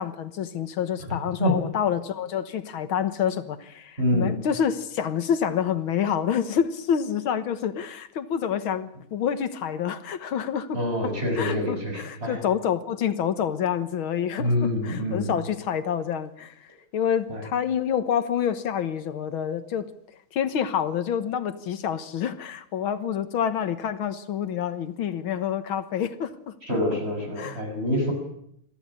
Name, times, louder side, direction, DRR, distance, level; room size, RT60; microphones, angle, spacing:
voice 1, 0.0-10.8 11.0-19.9 20.3-26.6 27.4-27.6, left 8 dB, 75° left, 12 dB, 2.1 m, -28 dB
voice 2, 1.1-1.5 4.0-4.3 10.7-12.4 14.4-15.3 17.3-17.4 26.6-28.1, left 1 dB, 30° right, 3 dB, 6.5 m, -26 dB
22.5 x 14.5 x 9.9 m, 0.72 s
omnidirectional pair, 2.3 m